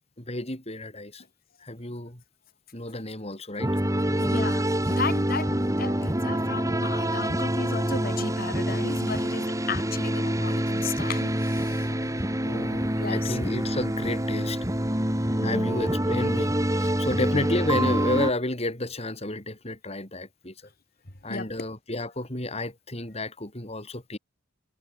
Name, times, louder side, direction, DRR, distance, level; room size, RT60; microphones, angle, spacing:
voice 1, 0.2-1.2 1.6-2.2 2.7-3.7 12.4-14.6 15.4-20.5 21.2-24.2, left 1 dB, 30° left, 4.7 m, -31 dB
sound 1, 3.6-18.3, right 1 dB, 15° right, 3.9 m, -26 dB
voice 2, 4.2-11.9 13.0-13.4 15.4-15.7 21.3-21.5, left 4 dB, 50° left, 3.6 m, -35 dB
head